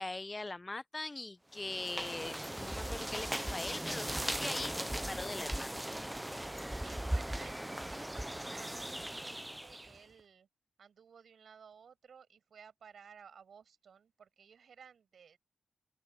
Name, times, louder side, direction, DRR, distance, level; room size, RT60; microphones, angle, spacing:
voice 1, 0.0-5.8, left 2 dB, 30° left, 0.9 m, -41 dB
sound 1, 1.6-10.0, right 1 dB, 10° right, 0.8 m, -38 dB
voice 2, 6.8-10.5 10.8-15.4, right 7 dB, 80° right, 7.2 m, -57 dB
open air
cardioid pair, 50°, 0 cm